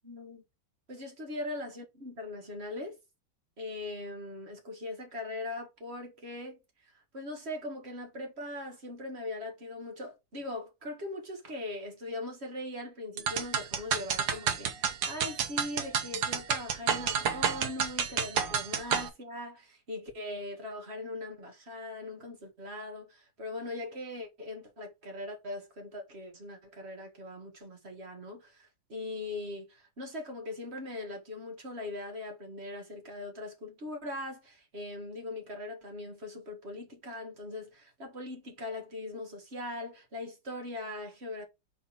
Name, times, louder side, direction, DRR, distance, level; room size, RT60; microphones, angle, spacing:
voice 1, 0.0-0.4 0.9-3.0 3.6-41.4, left 2 dB, 35° right, 1.9 m, -40 dB
sound 1, 13.2-19.1, right 7 dB, 90° right, 1.7 m, -30 dB
4.4 x 4.1 x 5.6 m
omnidirectional pair, 2.0 m